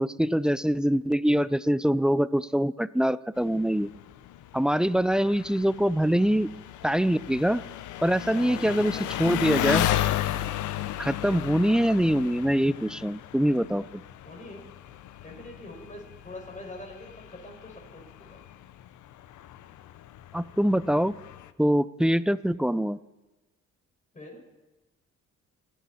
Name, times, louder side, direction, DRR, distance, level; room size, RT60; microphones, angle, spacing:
voice 1, 0.0-3.9 4.5-6.5 6.8-7.6 8.0-8.9 9.2-9.9 11.0-14.0 20.3-21.1 21.6-23.0, equal, 5° right, 17 dB, 0.4 m, -24 dB
Engine, 3.4-21.5, left 12 dB, 75° left, 0.7 m, -34 dB
voice 2, 8.3-9.5 14.2-14.6 15.2-18.4 24.1-24.4, left 1 dB, 25° left, 0 dB, 5.5 m, -44 dB
28.0 x 10.5 x 4.2 m, 1.1 s
cardioid pair, 90°, 30 cm